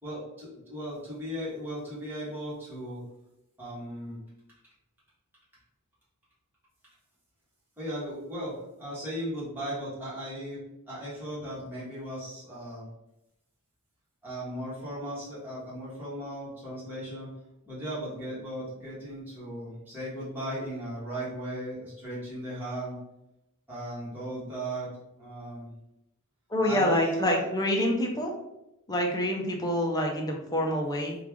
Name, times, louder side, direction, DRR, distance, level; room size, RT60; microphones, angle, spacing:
voice 1, 0.0-3.0 3.6-4.2 7.8-12.9 14.2-17.3 17.6-23.0 23.7-24.9 25.2-25.7 26.6-27.5, equal, 10° right, -9 dB, 1.3 m, -37 dB
voice 2, 26.5-28.3 28.9-31.2, equal, 15° left, 1 dB, 0.5 m, -27 dB
3.2 x 2.5 x 3.5 m, 0.88 s
head